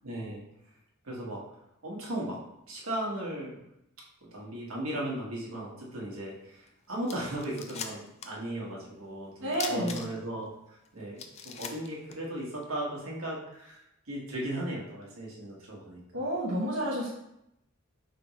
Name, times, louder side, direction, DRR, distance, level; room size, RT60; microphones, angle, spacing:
voice 1, 0.0-0.4 1.0-1.4 1.8-2.4 2.7-3.6 4.2-16.0, right 1 dB, 80° right, -4 dB, 1.3 m, -37 dB
sound 1, 6.7-6.8 7.1-8.4 8.7-8.8 9.5-10.4 10.8-10.9 11.2-12.7, left 6 dB, 30° left, 0.4 m, -40 dB
voice 2, 9.4-10.0 16.1-17.1, right 1 dB, 65° right, -7 dB, 0.9 m, -30 dB
5.3 x 3.4 x 3.0 m, 0.83 s
head